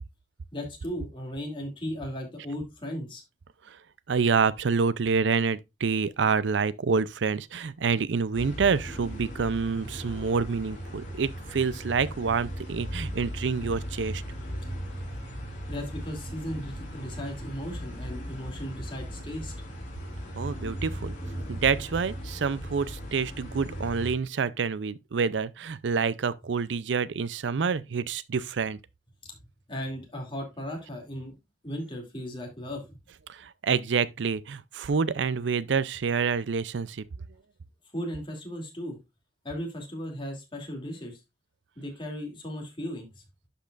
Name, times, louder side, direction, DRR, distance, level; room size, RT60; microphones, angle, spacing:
voice 1, 0.5-3.2 15.7-19.5 29.3-29.4 29.7-31.3 31.6-32.9 37.9-39.0 39.4-41.2 41.8-43.2, equal, 30° left, 2.7 m, -36 dB
voice 2, 4.1-14.2 20.3-21.2 21.5-28.8 33.3-37.1, right 5 dB, 85° right, 0.5 m, -27 dB
sound 1, 8.3-24.1, equal, 45° left, 3.5 m, -37 dB
11.5 x 5.3 x 2.5 m
head